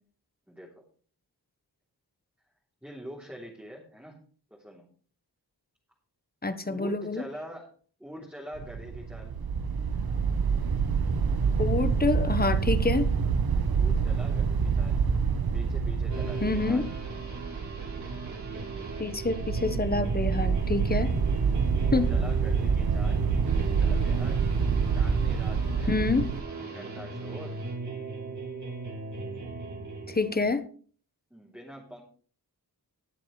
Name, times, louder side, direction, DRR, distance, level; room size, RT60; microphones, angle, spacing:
voice 1, 0.5-0.8 2.8-4.2 4.5-4.8 6.7-7.7 8.0-9.4 13.8-15.0 15.5-16.9 21.7-24.5 24.9-26.0 26.7-27.6 31.3-32.0, equal, 5° right, 3.4 m, -44 dB
voice 2, 6.4-7.2 11.6-13.1 16.4-16.9 19.0-21.2 21.9-22.1 25.9-26.3 30.1-30.7, left 3 dB, 25° left, 1.2 m, -27 dB
sound 1, 8.6-26.4, right 6 dB, 65° right, 1.1 m, -27 dB
sound 2, 16.1-30.5, right 3 dB, 50° right, 4.4 m, -38 dB
21.0 x 7.5 x 3.3 m
wide cardioid pair, 100°, 39 cm